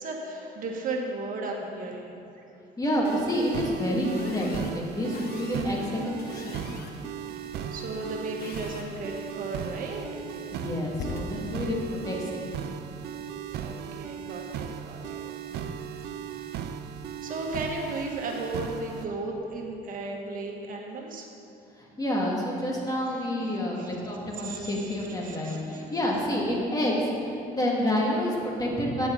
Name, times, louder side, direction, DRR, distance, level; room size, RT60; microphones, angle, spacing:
voice 1, 0.0-2.4 7.6-10.2 13.5-15.2 16.0-16.5 17.2-21.3 23.1-23.2 23.5-23.9 24.4-25.0 25.2-25.8, right 2 dB, 55° right, 1 dB, 1.5 m, -35 dB
voice 2, 2.8-6.9 10.5-12.4 15.5-15.9 21.8-29.1, left 1 dB, 20° left, -3 dB, 2.3 m, -29 dB
sound 1, 3.0-19.0, right 8 dB, 75° right, 0.6 m, -37 dB
sound 2, 4.1-13.2, left 5 dB, 65° left, 1.0 m, -45 dB
13.5 x 8.9 x 4.0 m, 2.7 s
cardioid pair, 110°, 17 cm